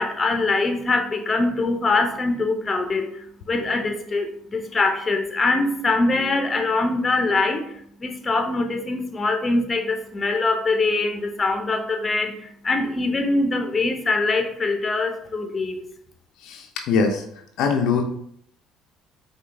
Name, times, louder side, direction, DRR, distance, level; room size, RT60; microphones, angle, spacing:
voice 1, 0.0-15.8, left 3 dB, 30° left, 5 dB, 0.7 m, -23 dB
voice 2, 16.4-17.2 17.6-18.0, left 5 dB, 70° left, 3 dB, 0.5 m, -22 dB
5.0 x 2.3 x 3.3 m, 0.69 s
supercardioid pair, 70°, 0 cm